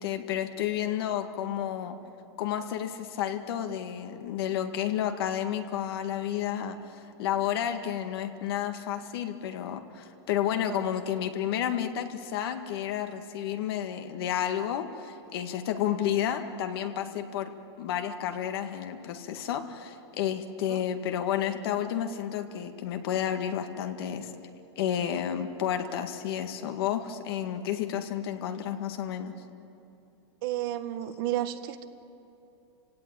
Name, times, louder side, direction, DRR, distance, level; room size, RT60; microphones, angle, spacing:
voice 1, 0.0-2.0 2.4-17.5 17.8-24.3 24.8-29.3, left 10 dB, 65° left, 6 dB, 1.7 m, -31 dB
voice 2, 30.4-31.9, right 13 dB, 55° right, 10 dB, 1.5 m, -32 dB
29.0 x 17.5 x 8.8 m, 2.8 s
supercardioid pair, 145°, 14 cm